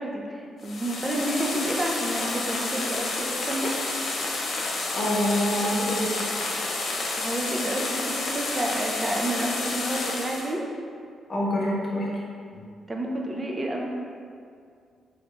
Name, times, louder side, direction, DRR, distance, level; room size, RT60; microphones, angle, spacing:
voice 1, 0.0-3.7 7.2-10.7 12.9-13.9, right 1 dB, 25° right, 0 dB, 0.5 m, -30 dB
sound 1, 0.6-10.5, left 2 dB, 60° left, 0.5 m, -30 dB
voice 2, 4.9-6.2 11.3-12.1 12.5-12.6, equal, 40° left, -5 dB, 0.9 m, -26 dB
3.9 x 3.2 x 2.4 m, 2.3 s
cardioid pair, 85°, 0 cm